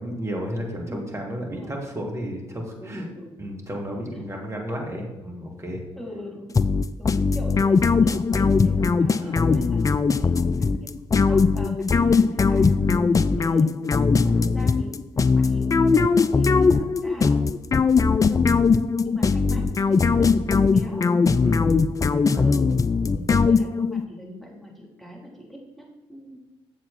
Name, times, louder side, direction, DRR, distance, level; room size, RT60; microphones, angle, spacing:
voice 1, 0.0-3.1 3.4-5.8 9.2-9.3 14.1-14.5 21.4-21.7 22.2-22.4 23.1-23.4, equal, 20° right, 0 dB, 2.6 m, -33 dB
voice 2, 1.4-1.8 2.8-3.4 4.1-4.5 6.0-6.6 7.0-10.9 11.3-17.5 18.3-21.1 22.4-22.8 23.1-26.4, equal, ahead, -3 dB, 3.0 m, -41 dB
sound 1, 6.6-24.0, left 4 dB, 25° left, 0.4 m, -20 dB
7.5 x 7.3 x 4.1 m, 1.1 s
figure-of-eight pair, 40°, 14 cm